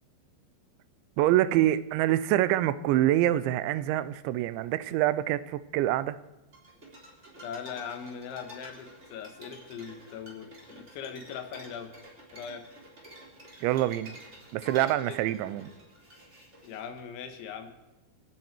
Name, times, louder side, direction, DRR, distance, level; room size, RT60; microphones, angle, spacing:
voice 1, 1.2-6.2 13.6-14.1 14.5-15.7, right 14 dB, 85° right, 15 dB, 3.0 m, -26 dB
sound 1, 6.5-17.0, right 1 dB, 15° right, 3.3 m, -49 dB
voice 2, 7.4-11.9 12.3-12.7 15.1-15.2 16.6-17.7, left 7 dB, 85° left, 8 dB, 3.9 m, -40 dB
29.0 x 11.0 x 4.5 m, 1.0 s
omnidirectional pair, 5.2 m